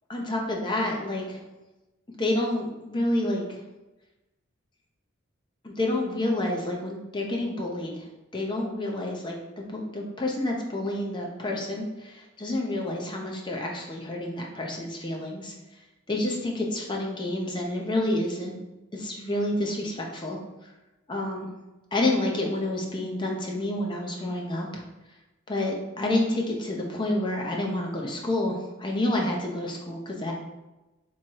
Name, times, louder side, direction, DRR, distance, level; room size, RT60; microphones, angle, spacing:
voice 1, 0.1-1.4 2.2-3.6 5.6-8.0 8.3-15.5 16.1-18.6 18.9-20.4 21.1-21.5 21.9-24.8 25.5-30.3, left 1 dB, 25° left, 0 dB, 0.6 m, -29 dB
3.6 x 3.1 x 4.5 m, 1.0 s
head